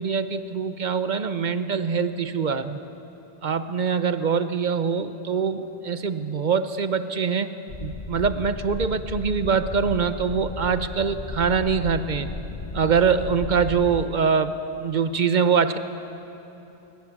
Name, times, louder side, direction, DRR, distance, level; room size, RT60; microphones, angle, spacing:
voice 1, 0.0-2.8 3.4-12.3 12.7-14.6 14.8-15.8, right 6 dB, 50° right, 11 dB, 0.9 m, -24 dB
sound 1, 7.7-14.0, left 4 dB, 35° left, 0.8 m, -35 dB
21.0 x 21.0 x 7.2 m, 3.0 s
omnidirectional pair, 1.1 m